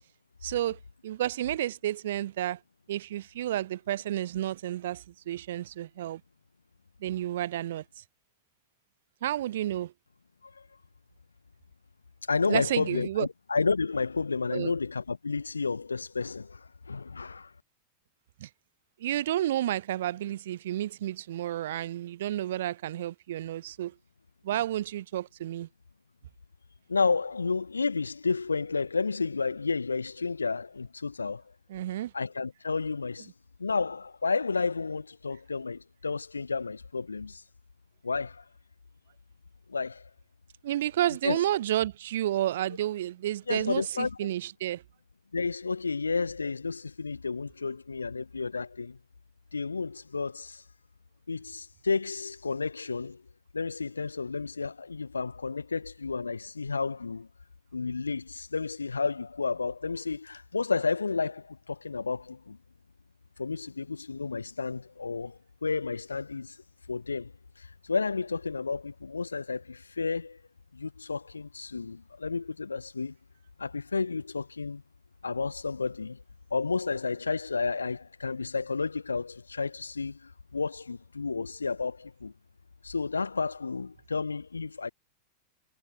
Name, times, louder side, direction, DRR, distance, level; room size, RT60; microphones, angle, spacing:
voice 1, 0.4-2.6 2.9-6.2 7.0-8.0 9.2-9.9 12.5-13.3 14.5-14.7 18.4-18.5 19.0-23.9 24.4-25.7 31.7-32.1 40.6-44.8, right 13 dB, 60° right, 2.1 m, -31 dB
voice 2, 12.3-17.5 26.9-31.4 32.1-33.3 33.6-37.4 38.0-38.4 39.7-40.1 41.2-41.4 43.5-44.3 45.3-49.0 49.5-50.6 51.3-53.2 53.5-57.3 57.7-62.6 63.4-66.6 66.9-67.3 67.6-70.4 70.7-73.1 73.6-74.8 75.2-76.2 76.5-82.3 82.8-84.9, left 4 dB, 75° left, 1.3 m, -31 dB
figure-of-eight pair, 90°, 0 cm